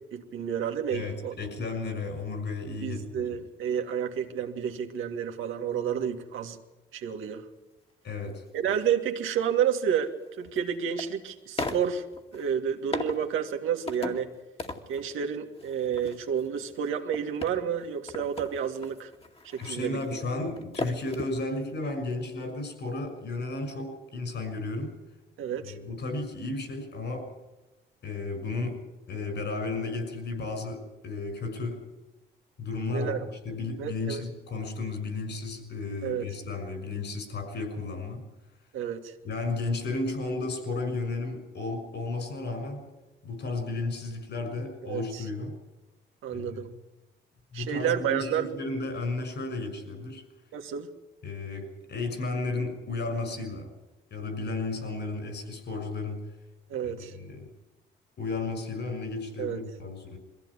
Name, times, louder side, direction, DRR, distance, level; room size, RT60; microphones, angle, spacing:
voice 1, 0.1-1.3 2.8-6.6 6.9-7.4 8.5-12.1 12.3-14.3 14.9-19.1 19.5-20.2 25.4-25.8 32.9-33.2 33.8-34.2 36.0-36.3 38.7-39.1 44.8-45.2 46.2-46.7 47.5-48.5 50.5-50.9 56.7-57.1 59.4-59.6, right 8 dB, 85° right, 4 dB, 2.1 m, -30 dB
voice 2, 0.9-3.3 8.0-8.4 19.6-24.9 25.6-27.3 28.0-31.8 32.6-38.2 39.2-42.8 43.2-45.5 46.3-46.6 47.5-50.2 51.2-53.7 54.1-56.2 56.8-57.5 58.2-60.2, left 3 dB, 60° left, 8 dB, 6.0 m, -33 dB
sound 1, 8.6-8.8 10.1-11.1 11.6-12.5 12.9-13.3 13.9-14.3 14.6-15.1 15.6-21.4 21.7-21.8, left 3 dB, 30° left, 2.3 m, -37 dB
21.5 x 15.5 x 9.9 m, 1.0 s
cardioid pair, 90°, 20 cm